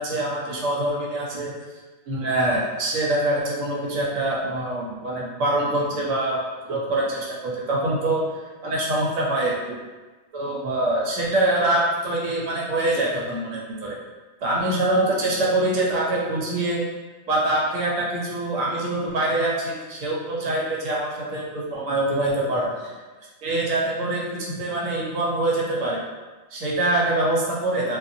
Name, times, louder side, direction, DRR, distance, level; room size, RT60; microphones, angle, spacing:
voice 1, 0.0-1.5 2.1-8.2 8.6-9.8 10.3-14.0 14.4-16.8 17.3-22.9 23.4-26.0 26.5-28.0, right 1 dB, 70° right, -4 dB, 0.9 m, -24 dB
2.5 x 2.5 x 2.6 m, 1.3 s
omnidirectional pair, 1.4 m